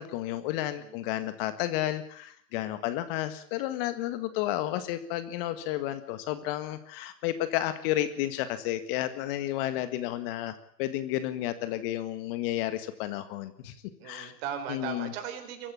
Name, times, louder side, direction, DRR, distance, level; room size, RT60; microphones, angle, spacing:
voice 1, 0.0-13.8 14.0-14.3 14.7-15.1, left 13 dB, 35° left, 11 dB, 1.8 m, -32 dB
voice 2, 14.0-15.7, right 8 dB, 40° right, 6 dB, 4.5 m, -38 dB
23.5 x 14.5 x 8.5 m, 0.62 s
hypercardioid pair, 130°, 46 cm